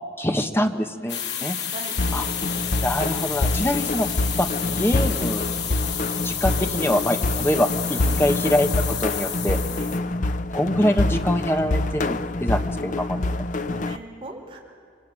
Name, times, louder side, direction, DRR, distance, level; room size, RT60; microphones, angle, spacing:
voice 1, 0.2-1.6 2.1-2.2 2.8-4.1 4.4-5.4 6.2-9.6 10.5-13.4, left 1 dB, 15° left, 5 dB, 1.3 m, -24 dB
sound 1, 1.1-10.0, left 8 dB, 75° left, 2.4 m, -30 dB
voice 2, 1.2-2.0 7.9-8.2 9.8-9.9 13.6-14.6, right 2 dB, 30° right, -2 dB, 5.0 m, -40 dB
sound 2, 2.0-14.0, left 2 dB, 45° left, 0.7 m, -26 dB
26.0 x 25.0 x 8.9 m, 2.2 s
head